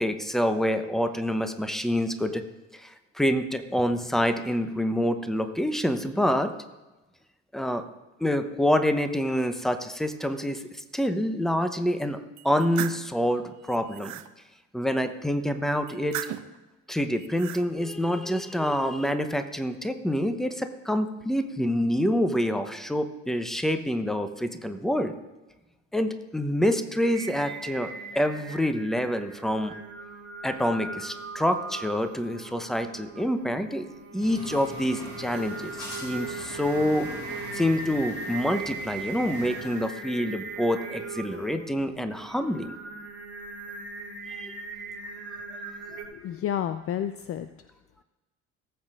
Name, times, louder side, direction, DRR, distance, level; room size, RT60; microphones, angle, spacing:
voice 1, 0.0-2.4 2.7-6.5 7.5-7.8 8.2-10.7 10.9-12.2 12.4-14.1 14.7-16.2 16.9-25.1 25.9-29.7 30.4-33.9 34.1-37.1 37.5-42.7 44.3-44.5, equal, ahead, 9 dB, 0.9 m, -27 dB
sound 1, 12.4-13.1 13.6-14.3 15.9-16.6 17.2-17.7, right 13 dB, 45° right, 0.6 m, -36 dB
Singing, 27.1-46.0, right 3 dB, 30° right, 2.2 m, -39 dB
sound 2, 34.2-39.9, left 1 dB, 70° left, 4.1 m, -42 dB
voice 2, 45.9-47.5, left 10 dB, 35° left, 11 dB, 0.5 m, -31 dB
18.5 x 8.0 x 2.5 m, 1.1 s
hypercardioid pair, 60°, 39 cm